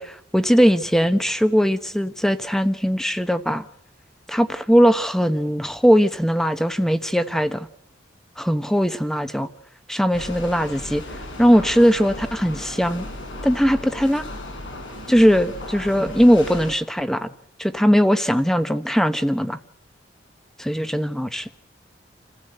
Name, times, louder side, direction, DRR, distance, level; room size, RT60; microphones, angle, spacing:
voice 1, 0.0-3.6 4.3-7.7 8.4-9.5 9.9-11.0 11.4-13.1 13.4-14.2 15.1-17.3 17.6-19.6 20.6-21.5, equal, ahead, 10 dB, 1.1 m, -19 dB
sound 1, 10.1-16.7, left 1 dB, 75° left, 7.9 m, -36 dB
28.0 x 16.0 x 7.9 m, 0.65 s
head